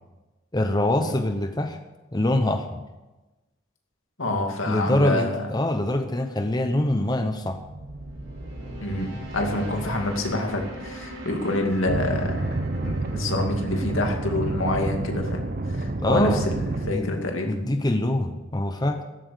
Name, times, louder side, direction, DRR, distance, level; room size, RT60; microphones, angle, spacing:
voice 1, 0.5-1.8 2.1-2.8 4.6-7.6 16.0-16.4 16.9-19.0, left 1 dB, 20° left, 6 dB, 0.8 m, -24 dB
voice 2, 4.2-5.5 8.8-12.6 12.8-15.4 15.7-17.5, left 1 dB, 85° left, 2 dB, 2.4 m, -27 dB
sound 1, 7.3-16.2, equal, 75° right, 4.8 m, -40 dB
sound 2, 11.9-16.9, right 2 dB, 45° right, 0.9 m, -28 dB
14.0 x 8.7 x 6.7 m, 1.1 s
head